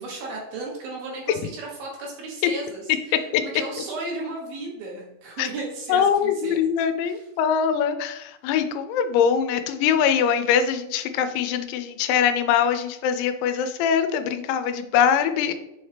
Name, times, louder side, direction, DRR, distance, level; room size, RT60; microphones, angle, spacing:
voice 1, 0.0-6.7 7.0-7.3, right 2 dB, 70° right, -2 dB, 2.5 m, -35 dB
voice 2, 5.9-15.5, left 8 dB, 85° left, 9 dB, 2.9 m, -22 dB
7.0 x 4.2 x 3.3 m, 0.88 s
omnidirectional pair, 5.2 m